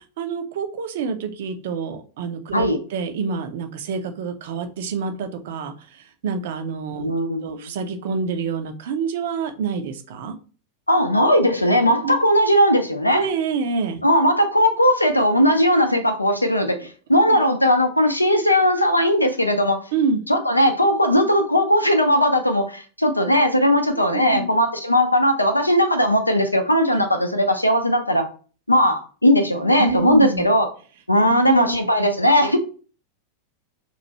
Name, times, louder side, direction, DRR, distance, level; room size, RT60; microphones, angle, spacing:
voice 1, 0.2-7.1 7.4-10.4 12.0-12.2 13.1-14.0 17.3-17.4 19.9-20.2 24.1-24.4 26.9-27.0 29.8-30.5 31.3-31.8, right 5 dB, 55° right, 0.5 m, -27 dB
voice 2, 6.9-7.7 10.9-13.3 14.0-19.9 20.3-28.3 28.7-30.7 31.1-32.6, equal, 85° left, 0.4 m, -18 dB
3.0 x 2.5 x 4.0 m
figure-of-eight pair, 90°, 0 cm